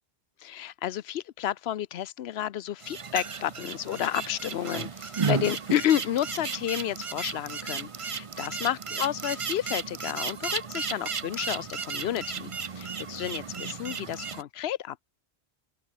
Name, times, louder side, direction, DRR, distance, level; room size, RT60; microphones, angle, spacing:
voice 1, 0.4-15.0, left 11 dB, 75° left, 0.9 m, -31 dB
sound 1, 2.8-14.4, right 5 dB, 35° right, 0.7 m, -34 dB
open air
omnidirectional pair, 1.1 m